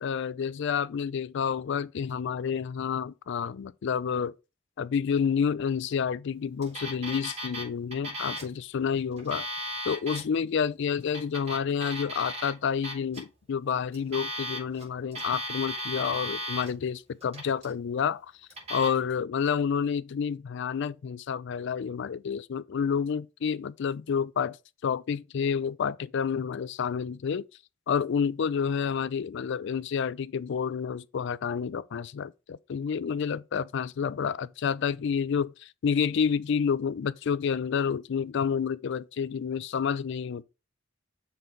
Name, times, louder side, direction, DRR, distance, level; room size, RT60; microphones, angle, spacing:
voice 1, 0.0-4.3 4.8-9.5 9.9-18.2 18.7-24.6 24.8-27.5 27.9-40.4, left 6 dB, 65° left, 0.4 m, -29 dB
Alarm, 6.6-7.6 7.9-8.5 9.1-10.2 11.0-12.5 12.8-13.2 13.9-14.8 15.1-16.7 17.2-17.7 18.5-18.9, equal, 35° right, 4.1 m, -35 dB
6.9 x 4.0 x 4.4 m
head